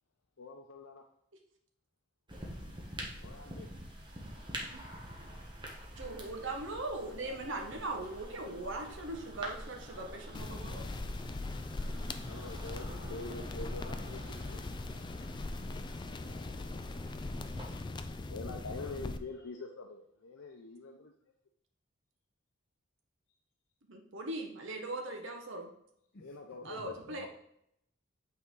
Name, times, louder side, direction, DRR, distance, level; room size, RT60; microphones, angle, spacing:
voice 1, 0.4-1.1 3.2-3.7 7.0-7.8 8.2-9.1 12.3-14.3 16.6-16.7 17.6-21.1 26.2-27.3, left 3 dB, 90° left, 3 dB, 0.6 m, -46 dB
sound 1, 2.3-17.8, right 1 dB, 25° right, 1.3 m, -47 dB
voice 2, 6.0-10.8 23.9-25.7 26.6-27.3, right 2 dB, 65° right, 3 dB, 1.1 m, -40 dB
sound 2, 10.3-19.2, left 2 dB, 20° left, 0.3 m, -40 dB
voice 3, 14.1-15.2 16.2-16.4 26.1-26.4 26.6-27.3, left 2 dB, 45° left, -1 dB, 0.8 m, -55 dB
8.3 x 4.4 x 3.7 m, 0.74 s
head